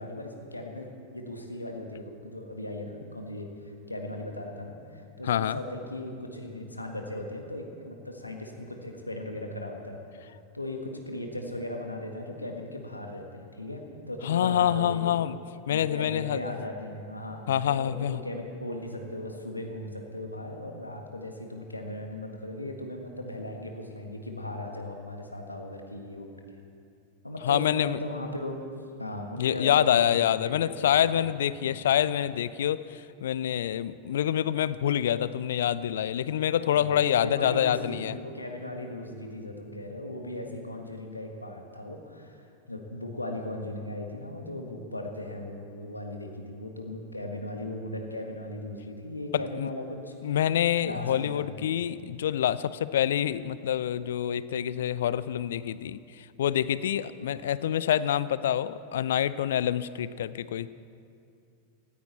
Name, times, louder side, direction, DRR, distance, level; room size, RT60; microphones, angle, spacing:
voice 1, 0.0-10.0 10.5-15.1 15.7-26.3 27.2-28.7 29.0-30.3 30.6-31.1 31.6-31.8 36.6-50.1 50.8-52.1 57.2-57.3, left 1 dB, 85° left, 3 dB, 1.6 m, -38 dB
voice 2, 5.2-5.6 14.2-15.4 15.7-16.4 17.5-18.2 27.4-28.0 29.4-38.1 49.3-49.7 50.2-60.7, left 10 dB, 60° left, 17 dB, 0.4 m, -26 dB
18.0 x 14.5 x 4.2 m, 2.5 s
figure-of-eight pair, 90°, 0 cm